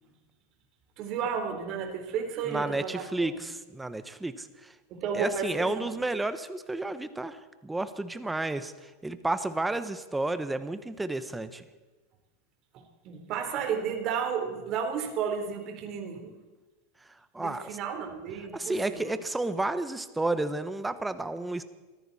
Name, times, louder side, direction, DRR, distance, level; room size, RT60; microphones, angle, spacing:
voice 1, 1.0-3.4 4.9-6.0 12.7-16.4 17.4-19.1, right 7 dB, 45° right, 3 dB, 3.8 m, -33 dB
voice 2, 2.5-4.7 5.1-11.6 17.3-17.6 18.5-21.6, right 2 dB, 5° right, 12 dB, 1.0 m, -31 dB
24.0 x 14.5 x 4.2 m, 1.2 s
supercardioid pair, 140°, 0 cm